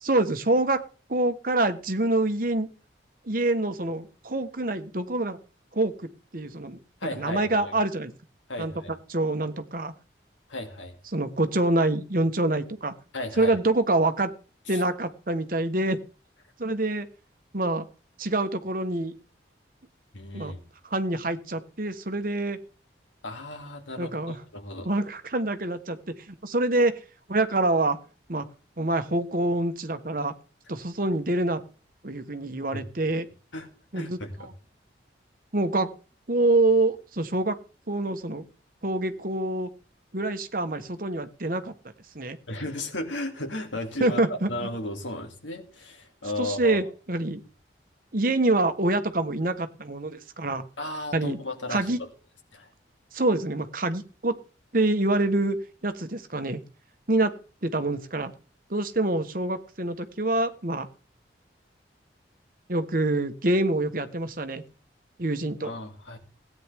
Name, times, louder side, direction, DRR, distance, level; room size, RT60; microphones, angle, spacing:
voice 1, 0.0-0.8 1.1-2.7 3.3-5.4 5.7-5.9 6.3-6.8 7.1-8.1 8.6-8.7 9.1-9.9 11.1-12.9 13.4-14.3 14.7-16.0 16.6-17.1 17.5-17.8 18.2-19.1 20.3-20.5 20.8-22.6 24.0-24.4 24.8-26.0 26.3-27.0 27.3-28.0 28.3-28.4 28.8-30.3 30.7-31.6 32.0-33.3 33.9-34.5 35.5-35.9 36.3-37.6 37.9-38.4 38.8-39.7 40.1-41.7 42.1-42.4 44.0-44.7 46.4-47.4 48.1-50.6 51.1-51.4 51.7-52.0 53.1-54.4 54.7-55.6 55.8-56.6 57.1-57.3 57.6-58.3 58.7-60.9 62.7-64.6 65.2-65.7, right 2 dB, 50° right, 10 dB, 1.1 m, -26 dB
voice 2, 7.0-7.7 8.5-8.9 10.5-11.0 13.1-13.6 14.7-14.8 20.1-20.6 23.2-24.9 32.7-32.9 33.5-33.7 33.9-34.5 42.5-44.2 44.5-46.8 50.8-51.9 52.5-52.7 65.6-66.2, left 1 dB, 85° left, 4 dB, 2.6 m, -35 dB
17.0 x 9.4 x 3.5 m, 0.37 s
head